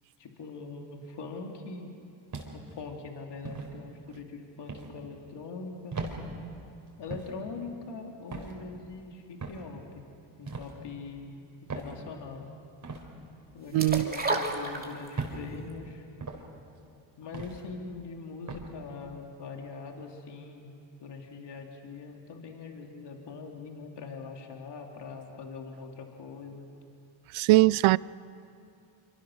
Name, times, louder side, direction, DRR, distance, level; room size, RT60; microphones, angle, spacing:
voice 1, 0.2-1.9 2.5-6.0 7.0-10.0 10.4-12.5 13.5-16.1 17.2-20.7 21.0-26.7, left 4 dB, 60° left, 2.8 m, -42 dB
sound 1, 2.3-2.8 3.4-3.7 4.7-4.9 5.9-6.2 7.1-7.3 8.3-8.6 9.4-9.7 10.5-10.7 11.7-11.9 12.8-13.0 14.0-14.2 15.2-15.4 16.2-16.4 17.3-17.6 18.5-18.7, right 4 dB, 40° right, 4.1 m, -38 dB
voice 2, 13.7-14.1 27.3-28.0, right 19 dB, 75° right, 0.5 m, -21 dB
sound 2, 13.8-15.3 15.7-15.8, right 2 dB, 20° right, 2.9 m, -30 dB
25.5 x 24.5 x 6.4 m
cardioid pair, 85°, 48 cm